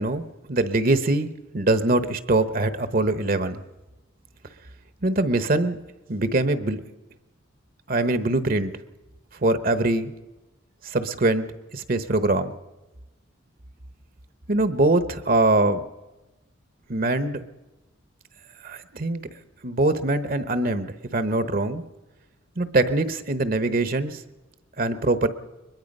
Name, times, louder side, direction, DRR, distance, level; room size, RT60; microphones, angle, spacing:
voice 1, 0.0-3.6 5.0-5.8 6.1-6.8 7.9-8.7 9.4-10.1 10.8-11.4 11.7-12.5 14.5-15.9 16.9-17.5 18.6-19.2 19.6-21.8 22.6-24.2 24.8-25.3, right 2 dB, 45° right, 11 dB, 0.9 m, -23 dB
23.0 x 21.0 x 5.4 m, 1.1 s
head